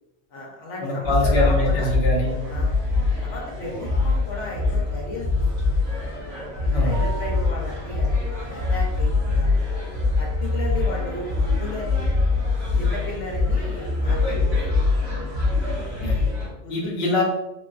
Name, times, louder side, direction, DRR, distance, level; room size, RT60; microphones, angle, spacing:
voice 1, 0.3-1.9 2.5-2.8 3.2-5.7 6.6-9.5 10.2-12.1 12.7-14.6 16.4-16.9, left 1 dB, 90° left, -2 dB, 1.1 m, -34 dB
voice 2, 0.8-2.3 6.7-7.0 15.8-16.2 16.7-17.2, left 1 dB, 65° left, -4 dB, 1.0 m, -24 dB
sound 1, 1.0-16.5, left 3 dB, 85° right, 1.8 m, -23 dB
sound 2, 6.9-8.0, right 4 dB, 55° right, 0.7 m, -39 dB
3.8 x 2.2 x 2.4 m, 0.93 s
omnidirectional pair, 1.2 m